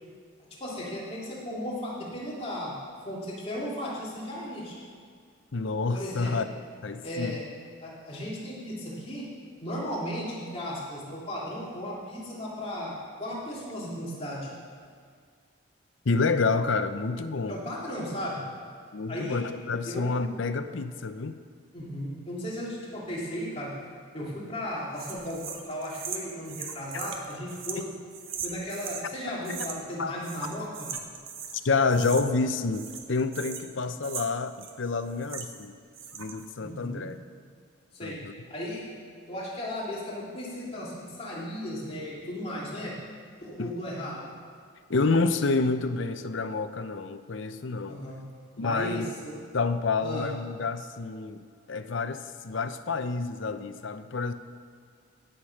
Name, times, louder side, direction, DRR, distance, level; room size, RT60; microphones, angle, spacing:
voice 1, 0.6-2.8 3.0-4.8 5.9-6.5 7.0-7.4 7.8-9.3 9.6-14.5 17.5-18.5 19.1-19.4 19.8-20.2 21.7-23.8 24.1-27.9 28.4-30.9 36.6-37.1 37.9-38.2 38.5-38.9 39.2-43.0 43.4-44.3 47.9-48.3 48.6-49.4 50.0-50.3, equal, 30° left, -6 dB, 2.8 m, -35 dB
voice 2, 5.5-6.5 6.8-7.4 16.1-17.6 18.9-21.4 30.0-30.1 31.6-35.7 36.1-37.2 38.0-38.3 43.6-43.7 44.9-48.0 48.6-49.1 49.5-51.4 51.7-54.3, left 3 dB, 65° left, 10 dB, 0.6 m, -28 dB
sound 1, 25.0-29.1 29.4-30.0 30.2-31.6 31.9-32.5 32.7-35.7 35.9-36.5, right 7 dB, 80° right, 1.2 m, -39 dB
16.5 x 6.7 x 5.9 m, 2.1 s
head